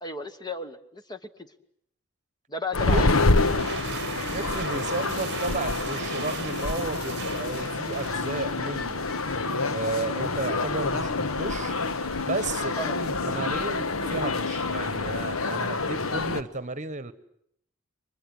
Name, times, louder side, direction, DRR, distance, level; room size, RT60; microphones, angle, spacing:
voice 1, 0.0-1.5 2.5-3.1 12.8-13.0, left 2 dB, 20° left, 9 dB, 1.3 m, -34 dB
sound 1, 2.7-16.4, left 3 dB, 70° left, 1.3 m, -27 dB
sound 2, 3.2-8.9, right 8 dB, 55° right, 1.0 m, -39 dB
voice 2, 4.3-9.1 9.7-11.8 12.3-17.1, right 3 dB, 35° right, 15 dB, 1.3 m, -33 dB
30.0 x 24.5 x 7.9 m, 0.70 s
head